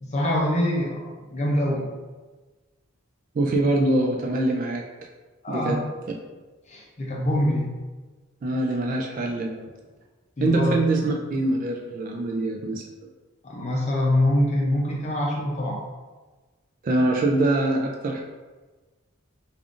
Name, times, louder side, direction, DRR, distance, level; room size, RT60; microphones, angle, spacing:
voice 1, 0.0-1.9 5.4-5.8 6.7-7.7 10.4-10.8 13.4-15.8, left 1 dB, 35° left, -2 dB, 0.5 m, -24 dB
voice 2, 3.3-4.8 5.5-5.8 8.4-9.6 10.4-12.8 16.8-18.2, right 2 dB, 40° right, 1 dB, 0.3 m, -24 dB
5.1 x 2.4 x 2.5 m, 1.3 s
head